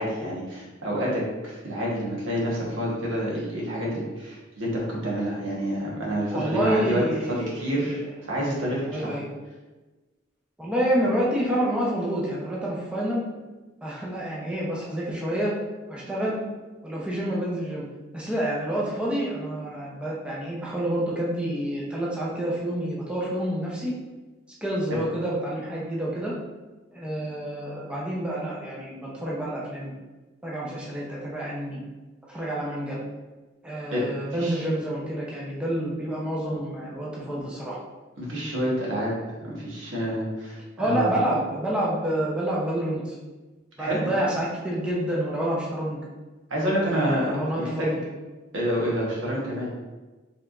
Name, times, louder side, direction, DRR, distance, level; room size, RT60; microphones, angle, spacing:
voice 1, 0.0-7.0 7.3-9.1 24.9-25.0 33.9-34.0 34.4-34.6 38.2-39.1 39.4-41.1 43.8-44.1 46.5-47.9 48.5-49.7, equal, 75° right, -5 dB, 1.3 m, -28 dB
voice 2, 6.3-8.0 8.9-9.3 10.6-13.2 13.8-15.5 15.9-16.4 16.8-17.9 18.1-23.9 24.6-26.3 26.9-29.9 30.4-31.8 32.3-33.0 33.6-37.8 40.8-43.1 43.8-46.0 46.8-48.0, right 1 dB, 5° right, -6 dB, 0.7 m, -28 dB
4.9 x 3.5 x 2.5 m, 1.2 s
head